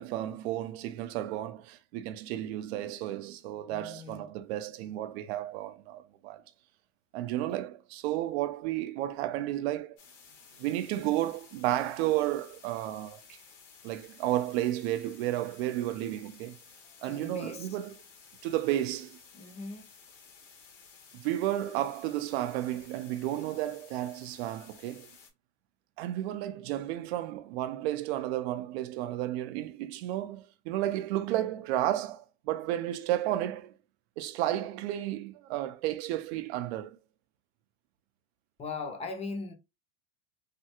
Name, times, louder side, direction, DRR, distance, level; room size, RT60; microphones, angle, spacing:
voice 1, 0.0-6.4 7.1-10.0 10.6-13.4 13.8-16.6 17.0-17.9 18.4-19.2 21.1-25.1 26.0-33.7 34.2-37.0, right 13 dB, 60° right, 0.5 m, -32 dB
voice 2, 3.6-4.3 17.0-17.8 19.3-19.9 38.6-39.5, left 4 dB, 15° left, 0.6 m, -39 dB
sound 1, 10.0-25.3, left 5 dB, 75° left, 1.4 m, -55 dB
3.3 x 2.3 x 2.9 m
supercardioid pair, 130°, 36 cm